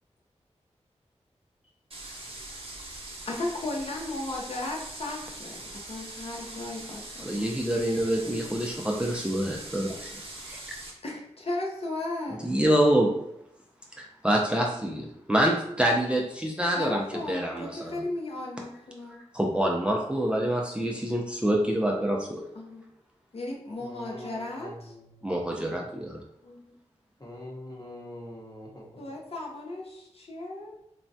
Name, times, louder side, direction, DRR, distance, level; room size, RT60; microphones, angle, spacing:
sound 1, 1.9-10.9, right 2 dB, 50° right, 0.7 m, -42 dB
voice 1, 3.3-7.5 11.0-12.4 16.7-19.2 22.5-22.8 23.3-24.9 26.4-26.7 29.0-30.8, left 2 dB, 55° left, -2 dB, 0.6 m, -35 dB
voice 2, 7.2-10.1 10.4-10.6 12.4-13.1 14.0-18.0 19.3-22.4 25.2-26.2, right 1 dB, 10° right, -1 dB, 0.4 m, -26 dB
voice 3, 23.8-25.8 27.2-29.2, left 1 dB, 35° left, -2 dB, 1.0 m, -44 dB
3.2 x 2.1 x 2.6 m, 0.79 s
cardioid pair, 55°, 12 cm